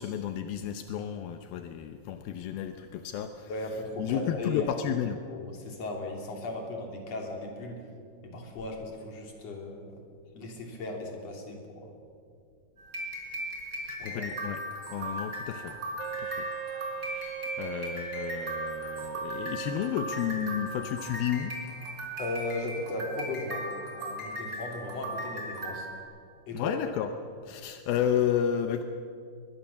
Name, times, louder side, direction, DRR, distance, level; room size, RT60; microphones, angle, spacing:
voice 1, 0.0-3.5 4.0-5.2 13.9-14.6 14.9-15.8 16.2-16.5 17.0-21.5 26.5-27.1 27.5-28.8, left 9 dB, 80° left, 7 dB, 2.7 m, -32 dB
voice 2, 3.5-4.7 5.3-7.8 8.2-10.0 10.3-11.9 14.0-14.3 22.2-23.7 24.0-25.9 26.5-26.8, left 2 dB, 45° left, 2 dB, 4.0 m, -37 dB
sound 1, 12.8-26.0, equal, 25° right, 4.6 m, -38 dB
Wind instrument woodwind instrument, 16.0-21.1, right 14 dB, 80° right, 2.3 m, -40 dB
22.5 x 22.0 x 7.1 m, 2.4 s
omnidirectional pair, 4.3 m